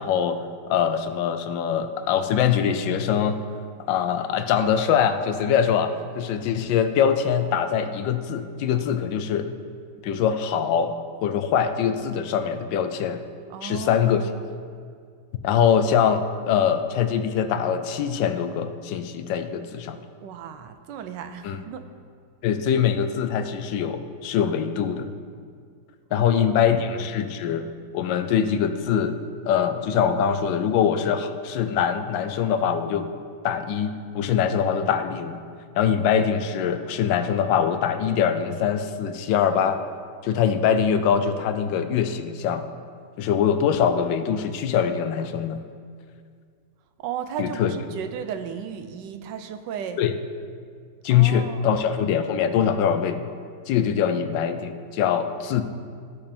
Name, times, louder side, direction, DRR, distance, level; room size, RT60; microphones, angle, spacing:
voice 1, 0.0-3.4 3.9-9.5 10.0-10.9 11.2-13.2 13.6-14.3 15.4-20.0 21.4-21.6 22.4-25.1 26.1-27.7 27.9-29.2 29.4-33.1 33.4-35.4 35.8-39.8 40.2-42.7 43.2-45.6 47.4-47.7 50.0-50.1 51.0-53.3 53.7-55.6, left 8 dB, 90° left, 9 dB, 1.3 m, -23 dB
voice 2, 13.5-14.2 20.2-21.9 26.1-27.2 47.0-50.0 51.1-51.7, right 8 dB, 85° right, 9 dB, 1.3 m, -35 dB
15.0 x 5.3 x 4.3 m, 2.2 s
omnidirectional pair, 1.9 m